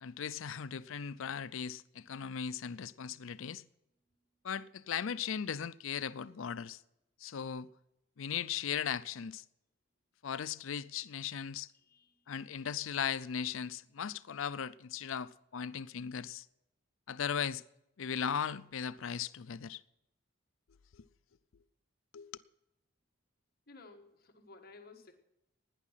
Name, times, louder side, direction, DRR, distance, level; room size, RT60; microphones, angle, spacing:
voice 1, 0.0-3.6 4.4-6.8 7.2-7.7 8.2-9.4 10.2-11.7 12.3-16.5 17.1-17.6 18.0-19.8 20.9-21.1 22.1-22.3, left 7 dB, 75° left, 0.5 m, -38 dB
voice 2, 11.7-12.3 23.7-25.1, left 3 dB, 45° left, 1.4 m, -57 dB
17.0 x 10.0 x 5.7 m
head